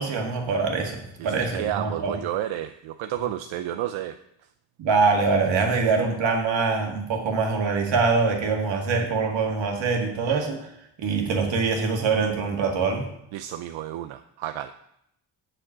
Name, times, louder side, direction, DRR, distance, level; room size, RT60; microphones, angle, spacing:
voice 1, 0.0-2.2 4.8-10.7 11.0-13.1, right 4 dB, 70° right, 2 dB, 2.0 m, -24 dB
voice 2, 1.2-4.2 13.3-14.7, right 12 dB, 85° right, 8 dB, 0.6 m, -31 dB
7.8 x 6.4 x 7.3 m, 0.76 s
cardioid pair, 150°, 46 cm